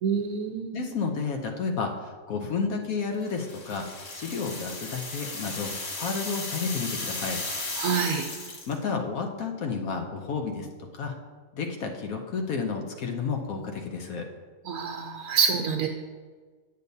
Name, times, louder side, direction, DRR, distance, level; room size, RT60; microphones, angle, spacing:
voice 1, 0.0-0.8 7.8-8.3 14.7-15.9, right 6 dB, 90° right, 3 dB, 1.1 m, -26 dB
voice 2, 0.7-3.9 4.1-7.4 8.7-10.7 10.9-11.1 11.5-14.3, left 5 dB, 80° left, 3 dB, 1.2 m, -31 dB
sound 1, 3.3-8.8, left 2 dB, 50° left, 1.6 m, -35 dB
8.3 x 8.0 x 2.7 m, 1.4 s
omnidirectional pair, 1.5 m